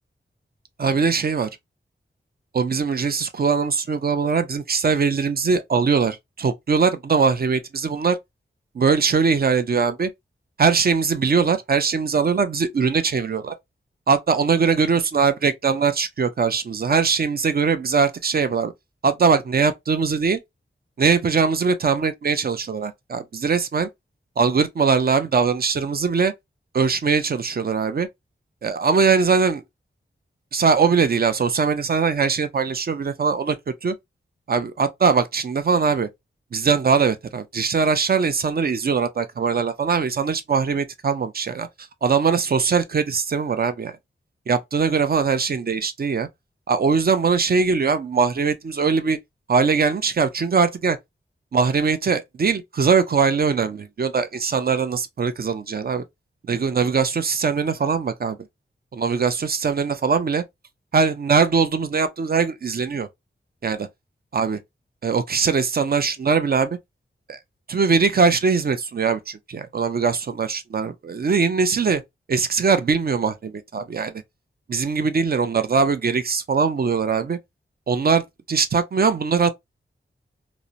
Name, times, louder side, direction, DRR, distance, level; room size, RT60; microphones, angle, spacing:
voice 1, 0.8-1.5 2.5-8.2 8.7-10.1 10.6-13.5 14.1-18.7 19.0-20.4 21.0-23.9 24.4-26.3 26.7-28.1 28.6-29.6 30.5-33.6 33.8-33.9 34.5-36.1 36.5-41.7 42.0-43.9 44.5-46.3 46.7-49.2 49.5-51.0 51.5-56.0 56.5-58.4 58.9-60.4 60.9-63.1 63.6-63.9 64.3-64.6 65.0-66.8 67.3-67.4 67.7-72.0 72.3-74.1 74.7-77.4 77.9-79.5, right 5 dB, 50° right, 0.5 m, -21 dB
2.8 x 2.0 x 2.4 m
wide cardioid pair, 85°, 20 cm